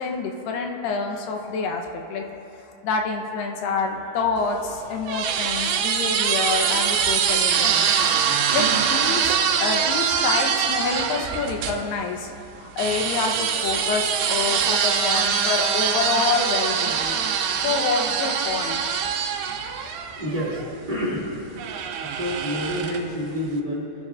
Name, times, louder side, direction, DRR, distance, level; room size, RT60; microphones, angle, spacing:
voice 1, 0.0-2.3 2.8-8.1 8.5-12.3 12.6-17.2 17.6-18.8, left 4 dB, 80° left, 2 dB, 2.7 m, -27 dB
sound 1, 4.4-11.8 12.8-20.7 21.6-23.2, right 7 dB, 80° right, 2.5 m, -23 dB
voice 2, 19.8-21.4 21.9-23.9, equal, 20° right, -8 dB, 1.5 m, -29 dB
23.5 x 10.5 x 2.4 m, 2.8 s
omnidirectional pair, 4.9 m